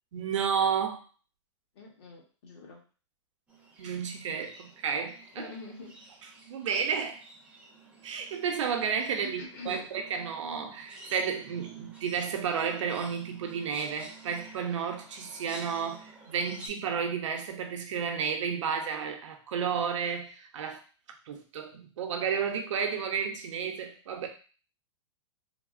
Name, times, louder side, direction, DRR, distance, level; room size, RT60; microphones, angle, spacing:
voice 1, 0.1-1.0 3.8-5.5 6.5-7.2 8.0-20.8 21.3-24.3, right 6 dB, 75° right, 4 dB, 0.7 m, -32 dB
voice 2, 1.7-2.8 5.3-5.9 9.2-9.9, left 3 dB, 50° left, -1 dB, 1.2 m, -44 dB
sound 1, 3.5-16.7, right 3 dB, 5° right, 0.6 m, -51 dB
3.4 x 2.1 x 2.5 m, 0.37 s
hypercardioid pair, 145°, 16 cm